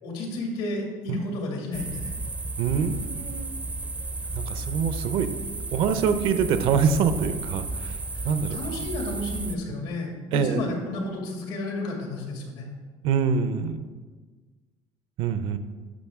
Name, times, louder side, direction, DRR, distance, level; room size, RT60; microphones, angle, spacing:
voice 1, 0.0-2.1 8.1-12.7, left 2 dB, 85° left, 0 dB, 2.3 m, -32 dB
sound 1, 1.7-9.6, right 3 dB, 15° right, 0.5 m, -33 dB
voice 2, 2.6-3.5 4.3-5.3 5.7-7.9 8.2-8.6 10.3-10.6 13.0-13.9 15.2-15.6, right 6 dB, 60° right, 10 dB, 0.6 m, -25 dB
11.5 x 6.2 x 3.6 m, 1.4 s
cardioid pair, 160°, 10 cm